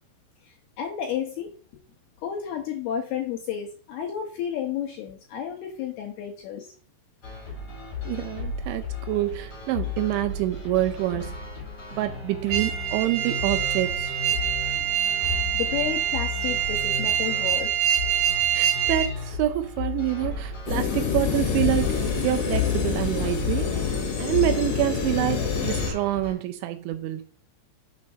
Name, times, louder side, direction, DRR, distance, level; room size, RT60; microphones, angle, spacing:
voice 1, 0.4-1.5 2.2-6.7 15.5-17.7, left 9 dB, 75° left, 2.4 m, -32 dB
sound 1, 7.2-26.3, left 6 dB, 30° left, 4.6 m, -34 dB
voice 2, 8.0-11.3 11.9-14.1 18.5-23.8 24.2-27.3, right 15 dB, 85° right, 2.7 m, -27 dB
sound 2, 12.5-19.1, right 10 dB, 65° right, 2.3 m, -25 dB
sound 3, 20.7-25.9, left 6 dB, 55° left, 3.4 m, -27 dB
7.4 x 5.1 x 4.3 m
omnidirectional pair, 5.6 m